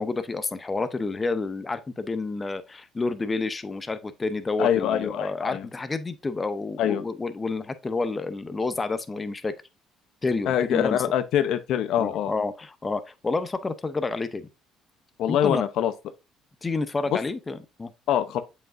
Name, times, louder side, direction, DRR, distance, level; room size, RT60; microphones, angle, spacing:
voice 1, 0.0-9.5 10.2-11.0 12.0-14.5 15.3-15.6 16.6-17.9, left 3 dB, 25° left, 0.7 m, -29 dB
voice 2, 4.6-5.7 6.8-7.0 10.5-12.3 15.2-15.9 18.1-18.4, left 10 dB, 70° left, 0.7 m, -24 dB
7.6 x 5.1 x 2.5 m
supercardioid pair, 90°, 0 cm